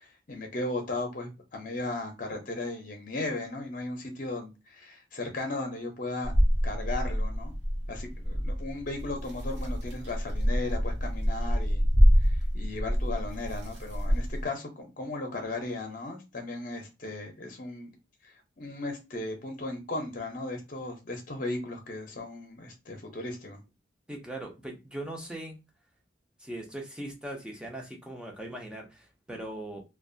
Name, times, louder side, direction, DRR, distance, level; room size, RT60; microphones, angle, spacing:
voice 1, 0.0-6.3 6.6-7.5 7.9-11.8 12.2-17.9 18.2-23.6, left 2 dB, 50° left, 0.7 m, -36 dB
sound 1, 6.2-14.5, equal, 75° right, 1.0 m, -26 dB
voice 2, 24.1-25.6 26.4-29.8, right 1 dB, 5° right, 0.6 m, -40 dB
2.6 x 2.2 x 2.5 m
head